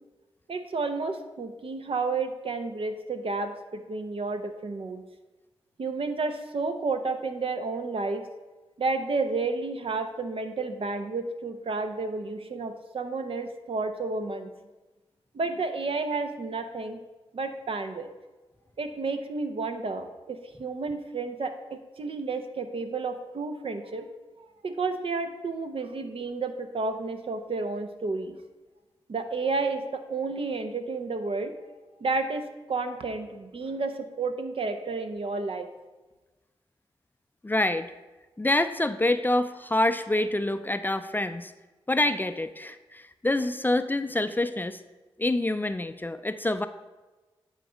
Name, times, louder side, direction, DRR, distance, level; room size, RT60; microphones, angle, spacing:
voice 1, 0.5-5.0 5.8-8.2 8.8-14.5 15.3-17.0 17.3-18.1 18.8-24.1 24.6-28.4 29.1-31.5 32.0-32.4 32.7-35.7, right 3 dB, 60° right, 7 dB, 0.7 m, -31 dB
voice 2, 37.4-37.9 38.4-41.5 41.9-44.8 45.2-46.7, left 1 dB, 20° left, 11 dB, 0.4 m, -26 dB
9.1 x 3.9 x 5.0 m, 1.2 s
cardioid pair, 45°, 10 cm